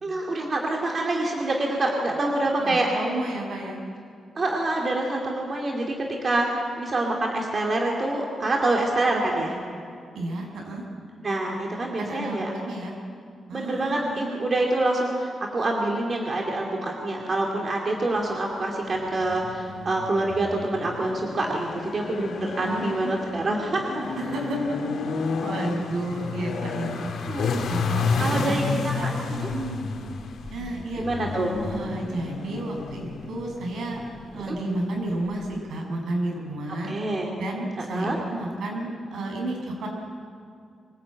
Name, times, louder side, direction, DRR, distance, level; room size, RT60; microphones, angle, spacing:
voice 1, 0.0-2.9 4.3-9.6 11.2-12.5 13.5-24.1 27.3-27.7 28.2-29.2 29.4-29.5 31.0-31.5 34.5-34.6 36.9-37.3 37.8-38.2, right 2 dB, 30° right, 0 dB, 2.4 m, -26 dB
voice 2, 2.6-3.8 10.1-10.8 12.0-12.9 13.5-14.3 22.6-23.1 24.0-27.1 27.7-29.1 29.5-29.9 30.5-31.0 31.6-34.0 34.3-36.9 37.4-39.9, right 1 dB, 75° right, 0 dB, 6.8 m, -32 dB
sound 1, 18.9-35.6, left 4 dB, 70° left, 2.9 m, -32 dB
24.5 x 20.5 x 8.8 m, 2.3 s
wide cardioid pair, 165°, 0 cm